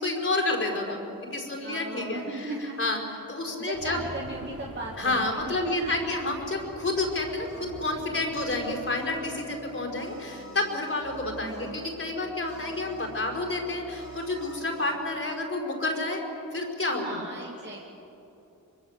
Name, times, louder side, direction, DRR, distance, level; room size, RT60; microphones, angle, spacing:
voice 1, 0.0-2.5 2.8-3.0 3.3-4.0 5.0-16.2 16.5-17.2, left 2 dB, 40° left, -1 dB, 5.0 m, -30 dB
voice 2, 1.6-2.9 3.6-6.2 11.4-11.7 17.0-18.0, right 2 dB, 30° right, -2 dB, 2.3 m, -37 dB
sound 1, 3.7-8.8, right 1 dB, 60° right, 6.4 m, -46 dB
sound 2, 6.9-14.9, right 1 dB, 85° right, 5.4 m, -44 dB
24.5 x 24.5 x 8.2 m, 2.9 s
wide cardioid pair, 155°, 34 cm